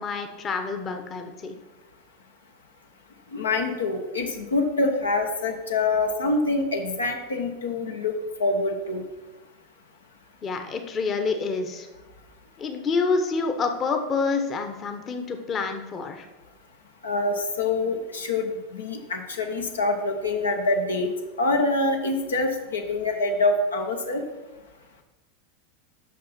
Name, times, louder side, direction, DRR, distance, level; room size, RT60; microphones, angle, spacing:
voice 1, 0.0-1.6 10.4-11.9 12.6-16.3, left 4 dB, 30° left, 6 dB, 1.0 m, -27 dB
voice 2, 3.3-8.1 8.4-9.0 17.0-21.1 21.4-24.2, left 2 dB, 80° left, 3 dB, 1.0 m, -25 dB
6.1 x 5.8 x 5.8 m, 1.1 s
figure-of-eight pair, 85°, 0 cm